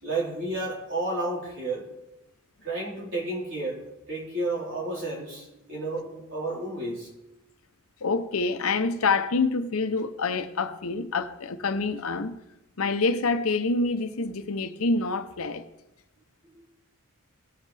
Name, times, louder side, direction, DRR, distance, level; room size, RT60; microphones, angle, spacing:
voice 1, 0.0-1.9 2.6-7.1, right 2 dB, 55° right, 4.0 m, -31 dB
voice 2, 8.0-12.4 12.8-15.6, left 3 dB, 75° left, 0.7 m, -26 dB
18.0 x 7.4 x 3.3 m
head